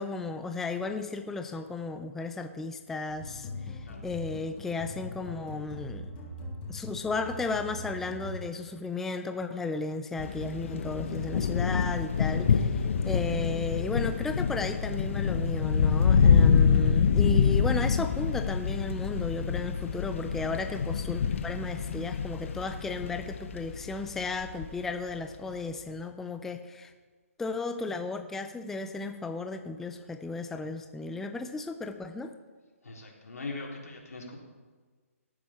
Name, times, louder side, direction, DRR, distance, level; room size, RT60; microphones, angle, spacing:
voice 1, 0.0-6.1 6.7-26.9 27.4-32.3, left 3 dB, 5° left, 7 dB, 0.4 m, -34 dB
sound 1, 3.1-8.8, left 1 dB, 20° left, 3.3 m, -41 dB
sound 2, 10.2-24.7, left 6 dB, 55° left, 0.9 m, -26 dB
voice 2, 32.8-34.4, left 3 dB, 90° left, -2 dB, 3.8 m, -41 dB
17.5 x 8.8 x 4.4 m, 1.4 s
hypercardioid pair, 155°, 8 cm